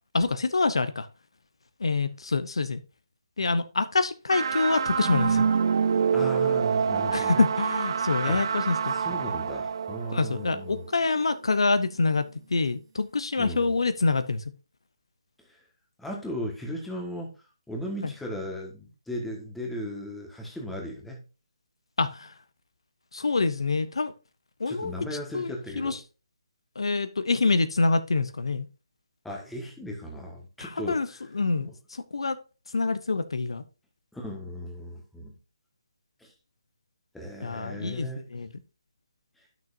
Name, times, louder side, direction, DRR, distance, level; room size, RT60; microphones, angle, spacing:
voice 1, 0.1-1.1 1.8-2.8 3.4-5.4 7.1-8.9 10.1-14.4 18.0-18.1 22.0-22.3 23.1-24.1 24.6-24.9 25.3-26.0 26.8-28.7 30.6-31.1 31.3-32.4 32.7-33.6 37.4-38.5, left 3 dB, 75° left, 12 dB, 0.7 m, -26 dB
sound 1, 4.3-11.2, right 6 dB, 55° right, 0.4 m, -27 dB
voice 2, 6.1-7.4 8.3-8.5 8.9-10.8 13.4-13.7 15.4-15.6 16.0-17.4 17.7-21.2 24.7-26.0 29.2-31.2 34.1-35.3 36.2-36.3 37.1-38.3, equal, 5° left, 0 dB, 1.5 m, -36 dB
11.5 x 6.2 x 2.6 m, 0.31 s
figure-of-eight pair, 150°, 3 cm